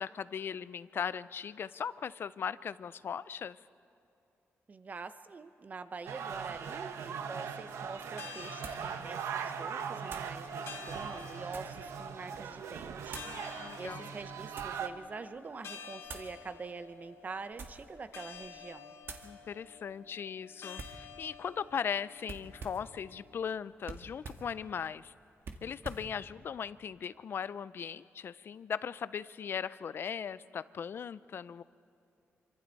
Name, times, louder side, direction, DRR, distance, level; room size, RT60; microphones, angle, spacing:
voice 1, 0.0-3.6 13.2-14.1 19.2-25.1 25.6-31.6, left 7 dB, 50° left, 17 dB, 0.4 m, -38 dB
voice 2, 4.7-19.0, right 4 dB, 35° right, 11 dB, 0.8 m, -45 dB
sound 1, 6.1-14.9, right 7 dB, 85° right, 0.9 m, -40 dB
sound 2, 7.1-23.6, left 7 dB, 70° left, 1.7 m, -51 dB
sound 3, 8.6-8.9 10.1-10.4 11.1-11.8 13.1-13.4 14.1-14.8 16.0-16.4 17.4-17.9 18.3-18.6 19.0-19.3 20.8-21.1 22.2-22.9 23.8-24.5 25.4-26.1, right 4 dB, 55° right, 1.6 m, -46 dB
27.0 x 24.5 x 4.1 m, 2.7 s
cardioid pair, 120°, 5 cm